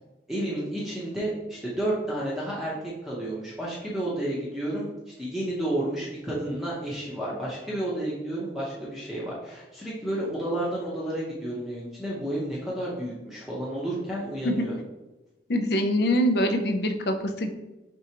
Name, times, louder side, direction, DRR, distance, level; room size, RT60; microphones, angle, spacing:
voice 1, 0.3-2.7 3.0-4.9 5.2-14.7, right 1 dB, ahead, -7 dB, 0.7 m, -31 dB
voice 2, 15.5-17.5, equal, 65° left, 6 dB, 0.5 m, -24 dB
4.6 x 3.7 x 2.8 m, 1.0 s
head